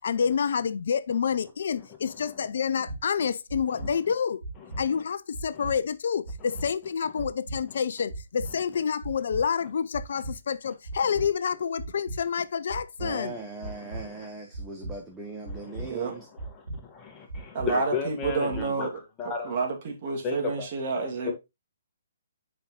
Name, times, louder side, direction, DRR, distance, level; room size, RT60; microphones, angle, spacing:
voice 1, 0.0-4.4 4.8-13.3, left 7 dB, 55° left, 0.4 m, -28 dB
sound 1, 2.9-3.0 3.5-3.9 4.4-4.8 5.3-5.7 6.2-6.7 7.2-7.6 8.1-8.5 9.0-9.4 9.9-10.3 10.8-11.3 11.8-12.2 12.7-13.1 13.6-14.0 14.5-14.9 15.4-15.9 16.4-16.8 17.3-17.7 18.2-18.6, right 2 dB, 70° right, 2.6 m, -36 dB
voice 2, 13.0-16.3, right 3 dB, 10° right, 1.0 m, -39 dB
voice 3, 13.8-14.2 15.5-16.1 16.4-18.9 19.2-19.6 20.2-20.7 20.9-21.3, left 6 dB, 20° left, 1.5 m, -35 dB
voice 4, 17.5-18.9 19.2-21.3, right 4 dB, 40° right, 2.2 m, -29 dB
7.5 x 5.2 x 3.0 m
figure-of-eight pair, 130°, 0 cm